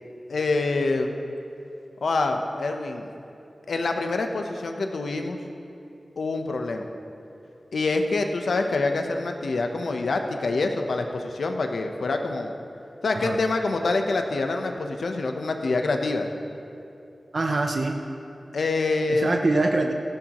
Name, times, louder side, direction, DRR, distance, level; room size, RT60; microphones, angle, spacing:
voice 1, 0.3-1.1 2.0-3.1 3.7-5.4 6.2-6.9 7.7-12.5 13.0-16.3 18.5-19.4, left 3 dB, 90° left, 4 dB, 0.9 m, -26 dB
voice 2, 17.3-18.0 19.1-19.9, right 2 dB, 55° right, 3 dB, 0.7 m, -24 dB
16.5 x 14.0 x 3.1 m, 2.6 s
wide cardioid pair, 90°, 0 cm